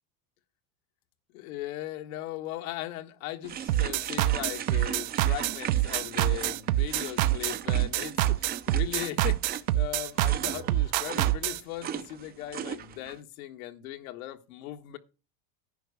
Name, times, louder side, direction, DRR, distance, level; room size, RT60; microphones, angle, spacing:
voice 1, 1.3-15.0, left 14 dB, 75° left, 1.6 m, -38 dB
sound 1, 3.4-13.2, right 9 dB, 20° right, 0.6 m, -39 dB
sound 2, 3.7-11.6, right 16 dB, 70° right, 0.9 m, -26 dB
10.5 x 5.7 x 8.3 m
supercardioid pair, 145°, 42 cm